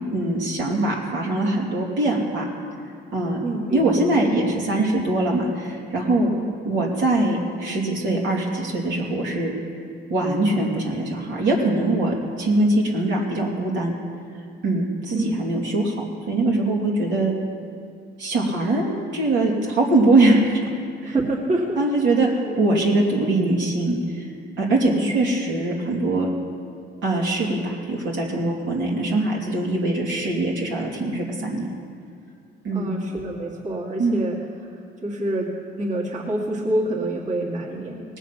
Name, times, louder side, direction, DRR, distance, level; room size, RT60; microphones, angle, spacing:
voice 1, 0.1-2.4 3.1-3.4 3.7-6.3 6.7-9.5 10.1-13.9 14.6-16.0 16.3-17.3 18.2-20.6 21.0-21.1 21.8-22.3 22.6-24.3 24.6-26.3 27.0-31.7 32.6-32.9 34.0-34.2, right 2 dB, 70° right, -3 dB, 2.8 m, -22 dB
voice 2, 3.4-4.1 6.3-6.5 15.1-15.3 21.0-21.8 22.4-22.6 24.9-25.2 32.7-34.4 35.0-38.0, right 1 dB, 40° right, -4 dB, 2.2 m, -27 dB
19.5 x 7.2 x 5.9 m, 2.2 s
cardioid pair, 90°, 20 cm